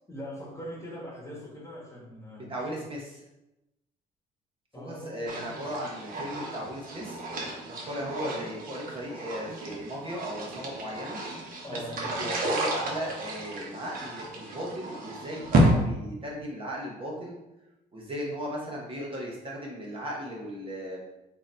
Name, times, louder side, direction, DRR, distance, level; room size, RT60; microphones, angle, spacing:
voice 1, 0.1-2.9 4.7-5.7 11.6-12.4, equal, 15° left, -3 dB, 1.2 m, -42 dB
voice 2, 2.5-3.2 4.8-7.2 7.7-11.2 11.7-17.4 17.9-21.0, equal, 30° right, -3 dB, 0.9 m, -36 dB
sound 1, 5.3-15.7, right 1 dB, 55° right, 1.0 m, -31 dB
3.9 x 2.6 x 4.2 m, 0.96 s
cardioid pair, 110°, 17 cm